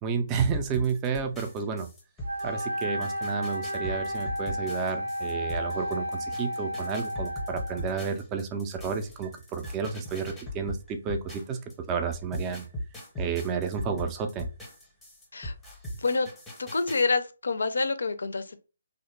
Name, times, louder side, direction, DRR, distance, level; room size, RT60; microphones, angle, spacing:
voice 1, 0.0-1.9 2.4-11.6 11.9-12.7 13.2-14.5, right 6 dB, 20° right, 0.4 m, -31 dB
sound 1, 0.5-11.7 12.1-17.0, left 1 dB, 10° left, 0.8 m, -40 dB
Wind instrument woodwind instrument, 2.2-8.1, equal, 80° right, 0.5 m, -33 dB
voice 2, 16.6-18.6, left 3 dB, 65° left, 0.4 m, -27 dB
2.8 x 2.0 x 3.1 m
figure-of-eight pair, 140°, 0 cm